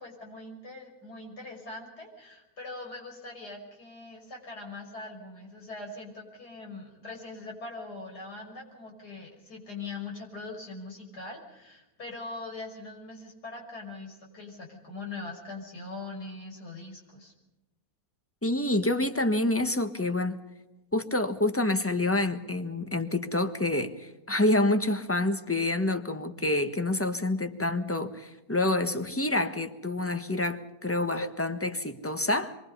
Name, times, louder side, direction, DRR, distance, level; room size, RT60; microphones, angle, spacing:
voice 1, 0.0-17.3, left 3 dB, 80° left, 6.4 m, -42 dB
voice 2, 18.4-20.4 20.9-32.5, left 2 dB, 10° left, 1.2 m, -27 dB
27.0 x 23.5 x 5.6 m
omnidirectional pair, 1.7 m